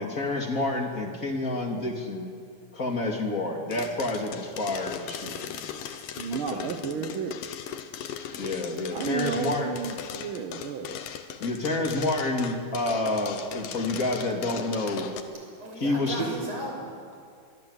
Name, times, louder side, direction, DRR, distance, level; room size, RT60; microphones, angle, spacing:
voice 1, 0.0-2.3 2.7-5.7 6.3-6.7 8.3-9.7 11.4-15.1 15.8-16.3, left 2 dB, 25° left, 2 dB, 2.8 m, -29 dB
sound 1, 3.7-15.2, left 8 dB, 80° left, 2.9 m, -38 dB
voice 2, 6.2-7.4 8.9-11.0, right 6 dB, 75° right, 8 dB, 1.2 m, -32 dB
voice 3, 15.3-17.2, equal, 50° right, 0 dB, 7.3 m, -37 dB
24.5 x 23.5 x 8.3 m, 2.2 s
omnidirectional pair, 3.9 m